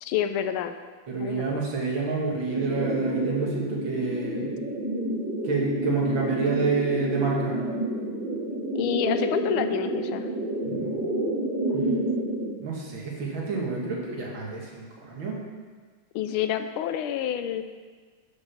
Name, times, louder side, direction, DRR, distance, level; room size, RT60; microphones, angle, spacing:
voice 1, 0.0-0.7 1.2-1.6 8.7-10.3 16.1-17.6, left 10 dB, 85° left, 9 dB, 1.5 m, -28 dB
voice 2, 1.1-4.5 5.4-7.6 10.6-11.3 11.7-11.9 12.6-15.4, right 4 dB, 65° right, -2 dB, 2.4 m, -28 dB
sound 1, 2.5-12.5, right 1 dB, 25° right, 2.9 m, -29 dB
11.0 x 5.4 x 5.9 m, 1.5 s
omnidirectional pair, 2.3 m